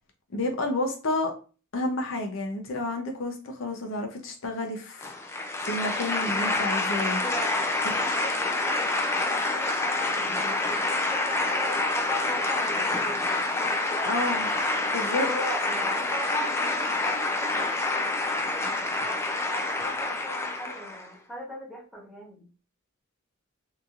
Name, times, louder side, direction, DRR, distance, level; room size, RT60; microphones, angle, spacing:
voice 1, 0.3-1.3 1.7-7.2 14.0-14.5 14.9-15.3, left 2 dB, 65° left, 0.6 m, -30 dB
sound 1, 5.0-21.1, left 2 dB, 15° left, 0.3 m, -27 dB
voice 2, 7.2-14.1 15.0-18.1 18.3-18.5 18.9-22.5, equal, 5° right, 0.9 m, -38 dB
2.9 x 2.6 x 2.4 m
head